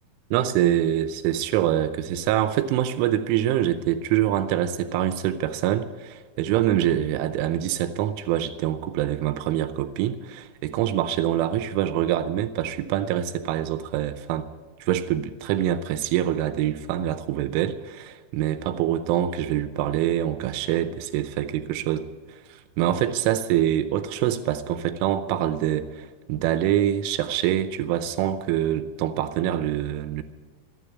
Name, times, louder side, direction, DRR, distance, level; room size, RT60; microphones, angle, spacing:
voice 1, 0.3-14.5 14.8-22.1 22.5-30.2, right 11 dB, 90° right, 10 dB, 3.2 m, -25 dB
15.0 x 9.8 x 8.3 m, 1.5 s
omnidirectional pair, 5.5 m